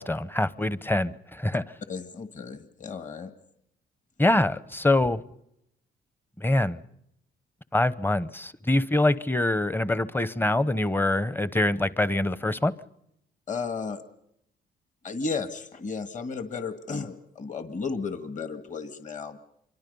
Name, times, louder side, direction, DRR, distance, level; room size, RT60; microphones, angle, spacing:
voice 1, 0.0-1.6 4.2-5.2 6.4-6.8 7.7-12.7, left 1 dB, 10° left, 0.8 m, -24 dB
voice 2, 1.9-3.3 13.5-14.0 15.0-19.4, left 4 dB, 40° left, 1.8 m, -34 dB
27.0 x 24.0 x 5.4 m
cardioid pair, 90°, 20 cm